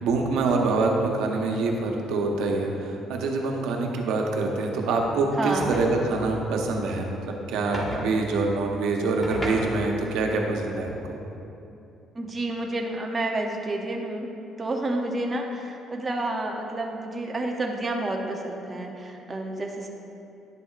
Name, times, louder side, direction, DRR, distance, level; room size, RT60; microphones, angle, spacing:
voice 1, 0.0-11.2, right 3 dB, 85° right, 1 dB, 0.9 m, -25 dB
voice 2, 5.4-5.7 12.1-14.3 14.6-19.9, right 2 dB, 25° right, 1 dB, 0.7 m, -29 dB
sound 1, 5.6-6.3 7.7-8.1 9.2-10.1, equal, 10° left, 1.3 m, -33 dB
10.5 x 6.9 x 2.5 m, 2.7 s
cardioid pair, 115°, 0 cm